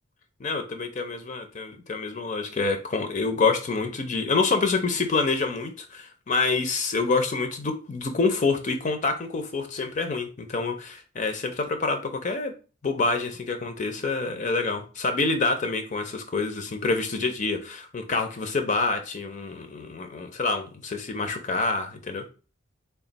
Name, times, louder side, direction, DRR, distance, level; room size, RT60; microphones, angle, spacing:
voice 1, 0.4-12.5 12.8-22.2, left 3 dB, 35° left, 7 dB, 0.4 m, -27 dB
3.4 x 2.3 x 3.9 m, 0.34 s
head